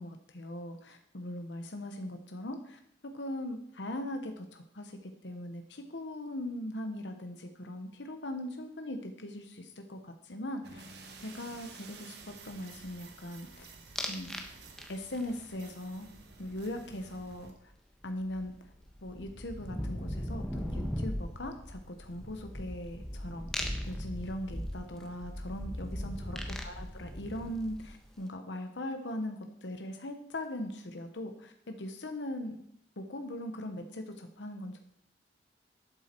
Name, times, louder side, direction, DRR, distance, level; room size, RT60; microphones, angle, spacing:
voice 1, 0.0-10.8 11.2-13.7 14.1-14.4 14.9-16.1 16.4-17.7 18.0-18.5 19.0-32.6 33.0-34.8, left 1 dB, 90° left, 6 dB, 1.1 m, -40 dB
sound 1, 10.6-17.5, right 4 dB, 65° right, 1.4 m, -52 dB
sound 2, 14.0-14.5 14.8-15.3 17.7-17.8 18.0-28.1, equal, 5° left, 1.1 m, -38 dB
12.0 x 7.5 x 4.5 m, 0.72 s
head